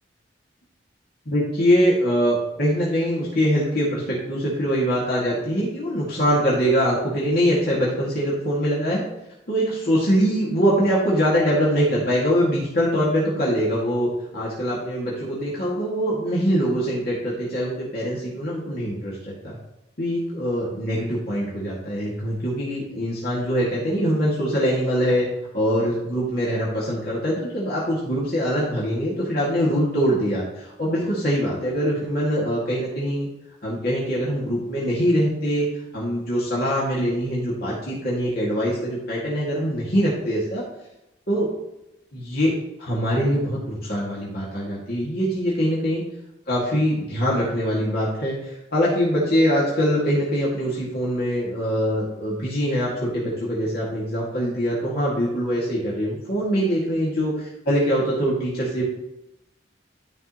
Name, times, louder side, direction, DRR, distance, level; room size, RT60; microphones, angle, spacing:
voice 1, 1.3-9.0 9.5-19.6 20.0-25.3 25.5-33.3 33.6-35.7 35.9-40.6 41.3-41.5 42.1-42.5 42.8-46.0 46.5-58.8, equal, 60° left, -6 dB, 2.2 m, -23 dB
12.5 x 5.4 x 3.0 m, 0.90 s
head